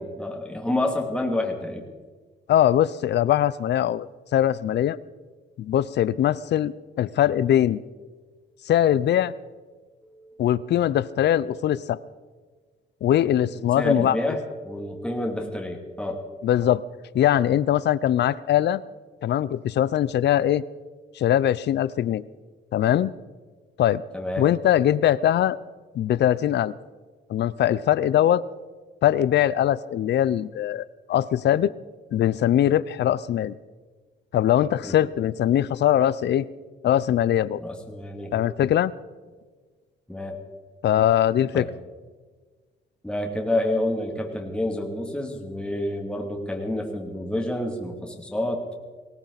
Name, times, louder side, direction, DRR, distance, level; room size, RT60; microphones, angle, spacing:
voice 1, 0.0-1.9 10.0-10.5 13.8-16.3 24.1-24.5 34.8-35.0 37.6-38.3 40.1-40.4 41.5-41.7 43.0-48.6, left 1 dB, 5° left, 1 dB, 2.6 m, -28 dB
voice 2, 2.5-4.1 4.3-5.0 5.6-7.8 8.7-9.3 10.4-12.0 13.0-14.1 16.4-16.8 17.1-18.8 19.2-20.6 21.2-22.2 22.7-23.1 23.8-24.0 24.4-25.6 25.9-26.7 27.3-28.4 29.0-31.7 32.1-33.5 34.3-36.5 36.8-37.6 38.3-38.9 40.8-41.7, left 11 dB, 60° left, 18 dB, 0.6 m, -21 dB
19.5 x 17.5 x 4.1 m, 1.4 s
cardioid pair, 90°, 20 cm